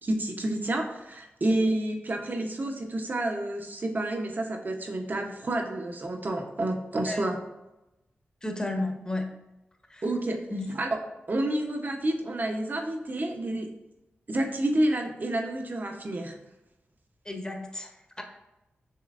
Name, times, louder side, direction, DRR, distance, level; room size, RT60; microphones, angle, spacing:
voice 1, 0.0-7.4 10.0-10.4 10.7-10.9 11.3-13.7 14.3-16.4, right 1 dB, 45° right, 3 dB, 0.8 m, -29 dB
voice 2, 8.4-9.3 9.9-10.0 10.5-10.8 17.2-18.2, left 2 dB, 20° left, 3 dB, 0.8 m, -33 dB
6.6 x 3.1 x 2.5 m, 0.94 s
cardioid pair, 55°, 4 cm